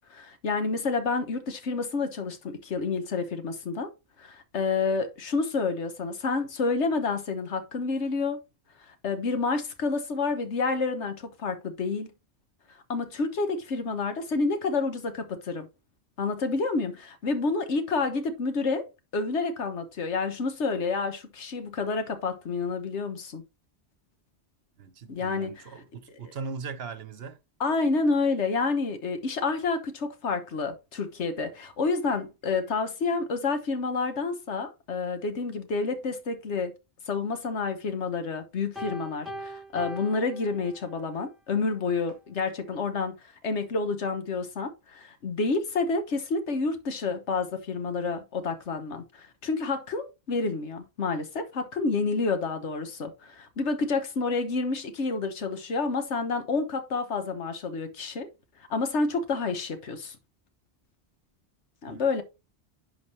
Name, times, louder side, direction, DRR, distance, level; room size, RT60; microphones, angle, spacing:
voice 1, 0.1-3.9 4.2-8.4 9.0-12.1 12.9-15.7 16.2-18.9 19.1-23.4 25.1-25.5 27.6-36.7 37.1-43.2 43.4-58.3 58.7-60.2 61.8-62.2, left 4 dB, 90° left, 1.4 m, -29 dB
voice 2, 24.8-27.4 61.9-62.2, right 5 dB, 65° right, 1.1 m, -39 dB
Piano, 38.8-41.1, right 1 dB, ahead, 1.6 m, -40 dB
11.0 x 3.9 x 3.2 m
omnidirectional pair, 1.1 m